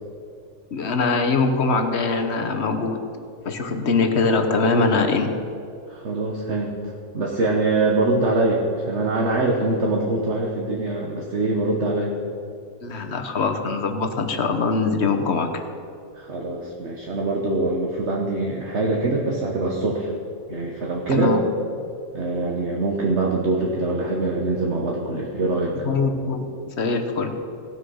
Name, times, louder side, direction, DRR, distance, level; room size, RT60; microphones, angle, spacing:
voice 1, 0.7-3.0 3.4-5.3 12.8-15.6 21.1-21.4 25.8-27.3, left 4 dB, 55° left, 6 dB, 1.2 m, -22 dB
voice 2, 5.9-12.1 16.1-20.1 20.5-21.4 22.1-25.9, right 2 dB, 55° right, -1 dB, 1.3 m, -24 dB
17.5 x 6.4 x 5.5 m, 2.6 s
omnidirectional pair, 1.5 m